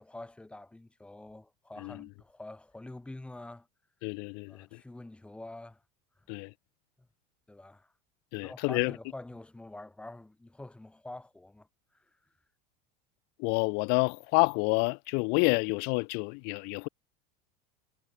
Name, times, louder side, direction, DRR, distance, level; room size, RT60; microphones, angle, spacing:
voice 1, 0.0-3.7 4.5-5.8 7.5-7.9 8.4-11.7 11.9-12.2, left 2 dB, 5° left, 2.4 m, -46 dB
voice 2, 4.0-4.8 6.3-6.5 8.3-8.9 13.4-16.9, left 34 dB, 55° left, 1.1 m, -29 dB
supercardioid pair, 150°, 20 cm